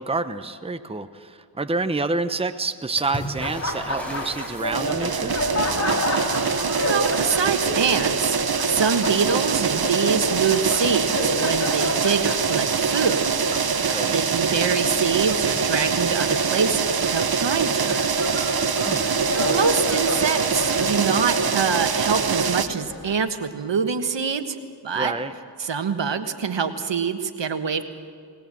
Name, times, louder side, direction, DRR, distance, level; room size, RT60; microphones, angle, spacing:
voice 1, 0.0-5.4 13.9-14.2 18.8-19.1 24.9-25.3, right 3 dB, 15° right, 10 dB, 0.9 m, -28 dB
Water / Splash splatter, 3.0-5.4 8.6-8.7 9.0-9.8 10.8-10.9, right 1 dB, 5° left, 7.4 m, -36 dB
Laughter, 3.3-23.2, left 1 dB, 35° left, 3.6 m, -31 dB
sound 1, 4.7-22.7, right 5 dB, 55° right, 1.1 m, -24 dB
voice 2, 6.8-8.4 8.6-13.3 13.8-18.0 19.4-24.6 24.8-25.1 25.6-27.8, right 6 dB, 70° right, 8 dB, 1.5 m, -25 dB
20.0 x 20.0 x 7.7 m, 2.2 s
cardioid pair, 55°, 45 cm